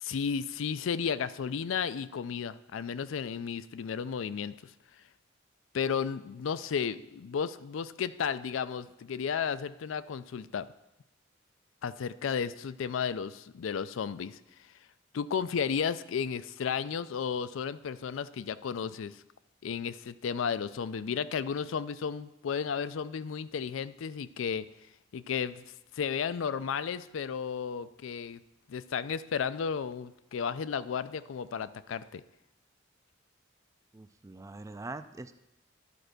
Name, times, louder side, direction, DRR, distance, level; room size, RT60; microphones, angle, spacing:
voice 1, 0.0-4.5 5.7-10.7 11.8-14.4 15.1-19.2 19.6-24.7 25.1-25.6 25.9-28.4 28.7-32.2, left 6 dB, 80° left, 15 dB, 0.4 m, -33 dB
voice 2, 33.9-35.3, right 2 dB, 15° right, 11 dB, 0.3 m, -43 dB
11.0 x 4.5 x 6.6 m, 0.89 s
head